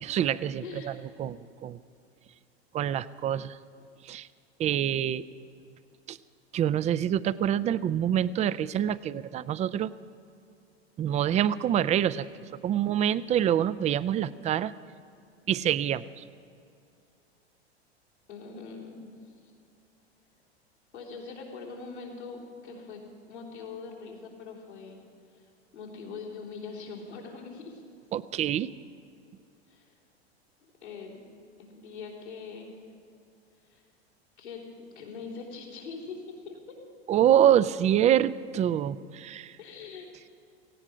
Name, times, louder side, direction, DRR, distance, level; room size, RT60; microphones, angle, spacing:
voice 1, 0.1-0.9 1.2-1.8 2.7-3.6 4.0-4.3 4.6-5.2 6.1-6.2 6.5-9.9 11.0-12.3 12.6-14.7 15.5-16.2 28.1-28.7 37.1-39.6, right 10 dB, 20° right, 17 dB, 0.4 m, -26 dB
voice 2, 0.6-1.1 3.3-3.5 3.8-4.0 12.2-13.0 15.1-15.2 18.3-19.4 20.9-23.0 23.3-25.0 25.3-27.8 29.7-30.0 30.6-31.2 31.6-32.9 33.6-33.8 34.4-36.8 39.6-40.3, left 4 dB, 90° left, -4 dB, 3.6 m, -43 dB
18.0 x 16.5 x 5.0 m, 2.4 s
hypercardioid pair, 95°, 33 cm